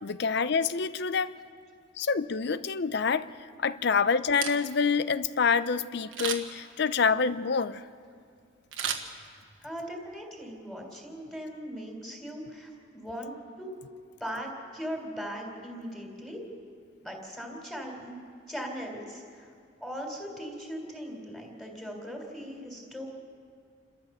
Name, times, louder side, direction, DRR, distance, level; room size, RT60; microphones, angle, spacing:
voice 1, 0.0-1.4 2.0-3.3 3.6-7.8, left 5 dB, 60° left, 15 dB, 0.6 m, -27 dB
Camera, 4.2-5.0 6.1-6.7 8.7-9.7 10.1-10.2, right 8 dB, 85° right, 1.5 m, -34 dB
voice 2, 9.6-13.7 14.2-16.4 17.0-18.2 18.5-19.5 19.8-23.0, equal, ahead, 0 dB, 3.5 m, -39 dB
29.0 x 13.5 x 6.8 m, 2.3 s
head